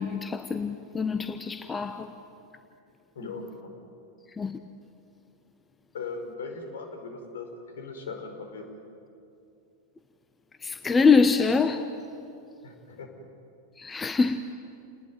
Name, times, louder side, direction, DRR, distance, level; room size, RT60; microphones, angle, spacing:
voice 1, 0.0-2.2 4.4-4.6 10.6-11.9 13.8-14.4, left 4 dB, 15° left, 1.1 m, -24 dB
voice 2, 3.1-3.7 5.9-7.5 7.7-8.6 12.6-13.1, left 4 dB, 60° left, 5.1 m, -38 dB
30.0 x 20.0 x 9.5 m
figure-of-eight pair, 90°, 0 cm